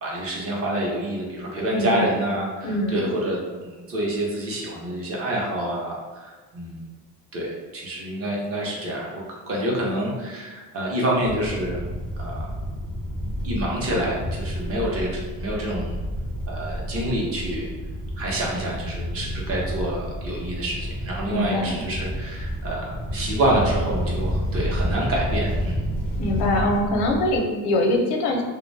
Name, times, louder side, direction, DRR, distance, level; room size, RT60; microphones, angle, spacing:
voice 1, 0.0-6.8 7.3-11.8 12.2-12.4 13.4-15.1 15.4-16.0 16.5-17.7 18.2-25.8, right 1 dB, 40° right, -3 dB, 0.6 m, -27 dB
voice 2, 1.7-2.1 2.6-3.0 21.3-21.8 26.2-28.4, left 1 dB, 85° left, 2 dB, 0.6 m, -23 dB
sound 1, 11.2-27.4, equal, 5° left, 0.3 m, -30 dB
2.5 x 2.1 x 3.2 m, 1.3 s
cardioid pair, 180°, 38 cm